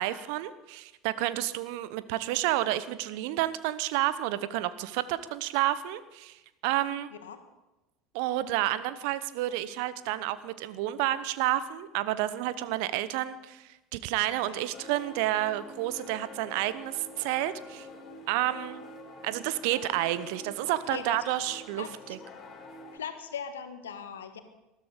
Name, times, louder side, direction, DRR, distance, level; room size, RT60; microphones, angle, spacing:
voice 1, 0.0-6.4 6.6-7.1 8.1-17.9 18.3-18.8 19.2-22.2, right 14 dB, 60° right, 15 dB, 0.9 m, -30 dB
sound 1, 14.7-23.0, left 2 dB, 40° left, 4.3 m, -47 dB
voice 2, 20.9-21.3 21.7-21.9 22.9-24.4, left 7 dB, 75° left, 8 dB, 1.6 m, -39 dB
20.0 x 13.0 x 5.0 m, 1.0 s
figure-of-eight pair, 70°, 0 cm